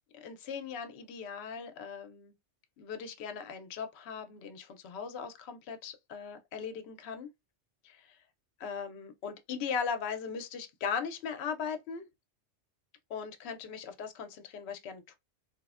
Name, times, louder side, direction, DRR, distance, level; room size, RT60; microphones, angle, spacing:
voice 1, 0.2-2.3 2.8-7.3 7.8-8.1 8.6-12.1 13.1-15.2, left 6 dB, 70° left, 0.8 m, -38 dB
3.4 x 2.0 x 2.4 m
omnidirectional pair, 1.2 m